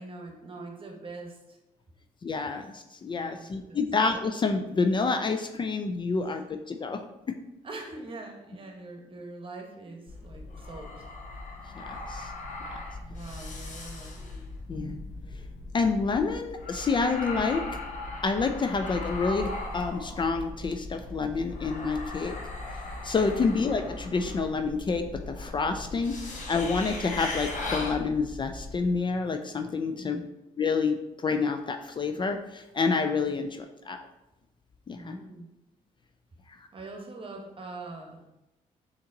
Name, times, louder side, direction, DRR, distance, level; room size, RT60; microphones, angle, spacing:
voice 1, 0.0-1.6 3.1-3.9 6.1-6.4 7.6-11.0 13.1-14.2 29.8-30.3 33.2-33.4 35.0-35.5 36.7-38.3, right 2 dB, 35° right, 2 dB, 1.1 m, -43 dB
voice 2, 2.2-7.0 7.3-7.4 11.8-12.3 14.7-15.0 15.7-17.6 18.2-22.3 23.0-26.2 26.5-30.2 30.6-34.0 34.9-35.2, left 4 dB, 30° left, 6 dB, 0.4 m, -28 dB
sound 1, 10.1-28.9, left 2 dB, 55° left, 1.0 m, -38 dB
4.2 x 2.9 x 3.8 m, 0.94 s
supercardioid pair, 65°, 15 cm